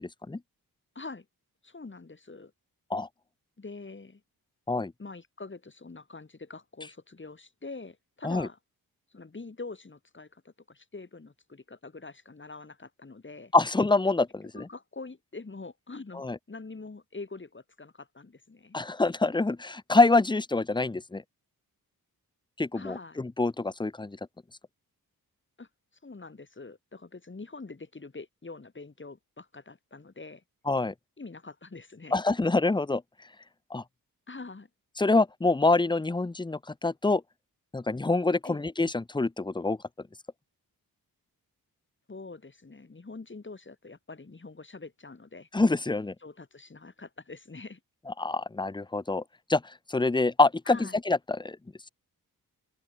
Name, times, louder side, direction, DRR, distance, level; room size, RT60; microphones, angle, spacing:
voice 1, 1.0-1.3 1.6-2.5 3.6-4.2 5.0-8.6 9.1-13.5 14.5-18.8 22.7-23.2 25.6-25.7 26.0-30.4 31.2-32.2 34.3-34.7 38.4-38.6 42.1-45.5 46.2-47.8 50.7-51.0, left 3 dB, 30° left, 5.5 m, -44 dB
voice 2, 13.5-14.6 16.1-16.4 18.7-21.2 22.6-24.2 30.7-30.9 32.1-33.0 33.7-33.8 35.0-37.2 37.7-39.8 45.5-46.1 48.1-49.2 49.5-49.6 49.9-51.6, left 3 dB, 10° left, 0.8 m, -25 dB
open air
cardioid pair, 90°, 37 cm